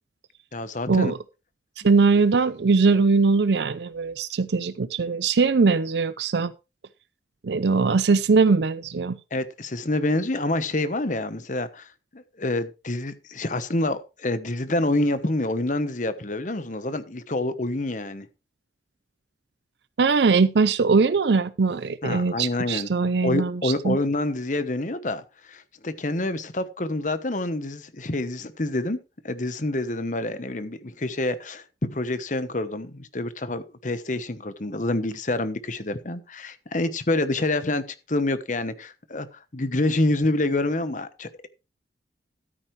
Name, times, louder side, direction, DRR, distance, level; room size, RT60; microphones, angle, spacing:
voice 1, 0.5-1.1 9.3-18.3 22.0-22.9 23.2-25.2 25.5-29.0 29.2-31.6 31.9-41.5, left 2 dB, 45° left, 1.1 m, -27 dB
voice 2, 1.8-6.5 7.4-9.2 20.0-24.0, right 4 dB, 75° right, 0.5 m, -21 dB
13.0 x 9.2 x 3.2 m
head